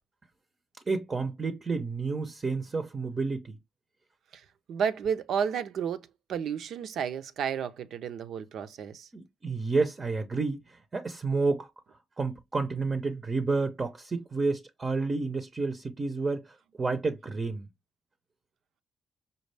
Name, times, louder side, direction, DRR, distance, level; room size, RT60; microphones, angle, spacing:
voice 1, 0.9-3.6 9.1-11.7 12.2-17.7, right 3 dB, 30° right, 0.6 m, -30 dB
voice 2, 4.3-9.1, right 7 dB, 70° right, 0.6 m, -32 dB
5.3 x 2.3 x 3.3 m
cardioid pair, 90°, 0 cm